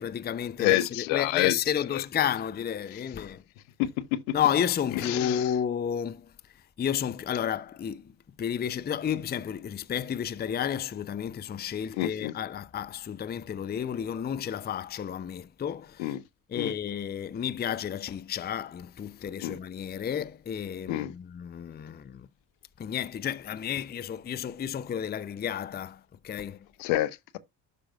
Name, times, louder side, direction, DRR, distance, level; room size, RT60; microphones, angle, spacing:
voice 1, 0.0-3.4 4.3-6.3 6.8-8.1 8.4-16.2 16.5-22.3 22.8-26.6, left 9 dB, 20° left, 0.5 m, -31 dB
voice 2, 0.6-1.6 3.8-4.3 5.0-5.4 12.0-12.3 16.0-16.2 16.6-16.7 19.4-19.6 20.9-21.1 26.8-27.4, left 15 dB, 75° left, 0.9 m, -28 dB
12.0 x 5.0 x 2.3 m
hypercardioid pair, 60°, 48 cm